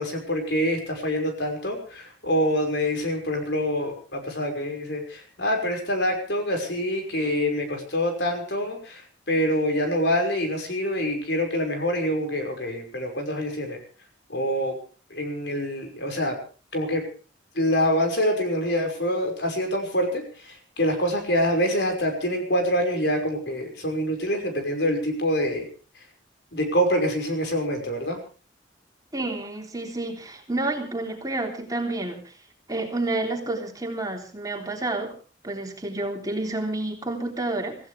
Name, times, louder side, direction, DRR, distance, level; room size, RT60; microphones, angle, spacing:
voice 1, 0.0-13.8 14.3-14.8 15.1-16.4 16.7-17.1 17.5-25.7 26.0-26.1 26.5-28.2, equal, 60° left, 4 dB, 5.7 m, -26 dB
voice 2, 29.1-32.4 32.7-35.1 35.4-37.8, right 2 dB, 20° right, 1 dB, 3.3 m, -29 dB
26.0 x 16.0 x 3.5 m, 0.38 s
head